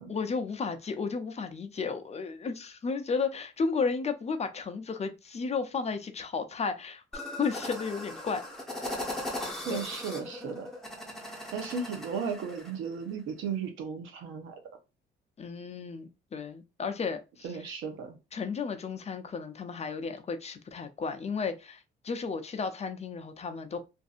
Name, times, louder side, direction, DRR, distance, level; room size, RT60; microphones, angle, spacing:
voice 1, 0.1-8.4 9.7-9.8 15.4-17.5 18.3-23.8, left 5 dB, 35° left, 0.5 m, -33 dB
sound 1, 7.1-12.7, left 1 dB, ahead, 0.9 m, -39 dB
voice 2, 9.6-10.7 11.5-14.6 17.4-18.2, right 6 dB, 85° right, 0.8 m, -35 dB
2.6 x 2.5 x 2.4 m
cardioid pair, 90°, 20 cm